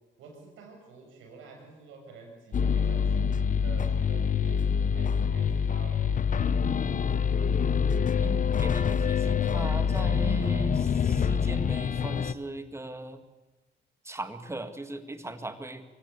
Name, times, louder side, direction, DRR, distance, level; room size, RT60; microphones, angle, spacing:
voice 1, 0.2-6.1, right 4 dB, 90° right, 1 dB, 7.2 m, -48 dB
sound 1, 2.5-12.3, left 7 dB, 40° left, 1.0 m, -26 dB
voice 2, 8.2-13.2 14.0-15.8, right 2 dB, 15° right, 9 dB, 2.1 m, -38 dB
24.0 x 16.0 x 8.3 m, 1.2 s
cardioid pair, 90°, 20 cm